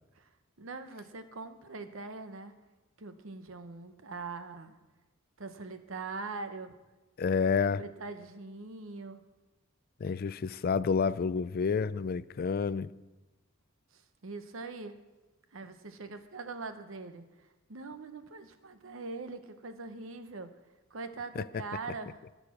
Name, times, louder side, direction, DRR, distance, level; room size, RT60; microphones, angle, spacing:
voice 1, 0.6-2.5 3.0-4.8 5.4-6.7 7.5-9.2 13.9-15.0 15.5-17.2 17.7-20.5 20.9-22.2, right 3 dB, 75° right, 0.9 m, -42 dB
voice 2, 7.2-7.8 10.0-12.9 21.4-21.5, left 5 dB, 50° left, 0.4 m, -29 dB
15.0 x 6.8 x 5.9 m
head